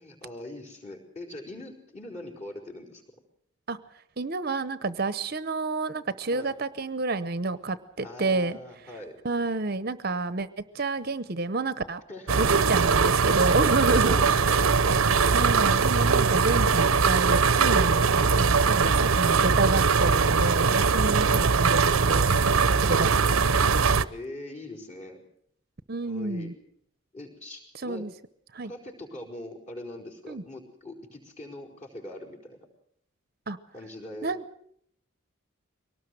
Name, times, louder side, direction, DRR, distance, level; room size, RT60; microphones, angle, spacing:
voice 1, 0.0-3.0 6.3-6.5 8.0-9.2 12.1-12.4 14.0-15.2 24.1-25.2 26.1-26.5 27.1-28.1 28.6-32.6 33.7-34.3, left 1 dB, 35° left, 1 dB, 4.8 m, -42 dB
voice 2, 4.2-8.6 9.2-10.5 10.7-12.0 12.4-14.7 15.3-18.1 18.4-23.6 25.9-26.5 27.8-28.1 28.5-28.7 30.3-30.4 33.5-33.6 34.2-34.4, right 3 dB, 45° right, 14 dB, 0.8 m, -29 dB
sound 1, 12.3-24.0, right 5 dB, 85° right, 0.8 m, -21 dB
23.5 x 18.5 x 7.8 m, 0.68 s
head